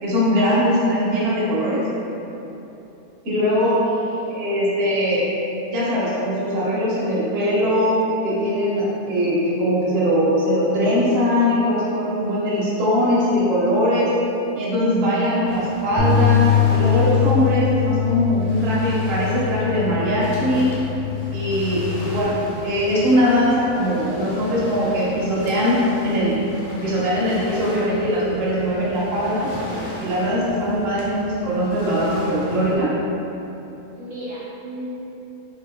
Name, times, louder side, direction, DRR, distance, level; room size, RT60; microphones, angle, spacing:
voice 1, 0.0-1.8 3.2-3.8 4.3-5.3 5.6-14.1 14.5-20.7 21.3-26.4 26.8-29.5 30.0-32.9, equal, 50° right, -8 dB, 0.9 m, -21 dB
voice 2, 3.6-4.5 33.9-34.9, right 1 dB, 70° right, -7 dB, 1.2 m, -36 dB
Waves surf, 15.4-32.8, left 1 dB, 70° left, 1.1 m, -37 dB
sound 1, 16.0-22.2, left 9 dB, 50° left, 0.8 m, -22 dB
3.1 x 2.6 x 3.6 m, 3.0 s
omnidirectional pair, 1.6 m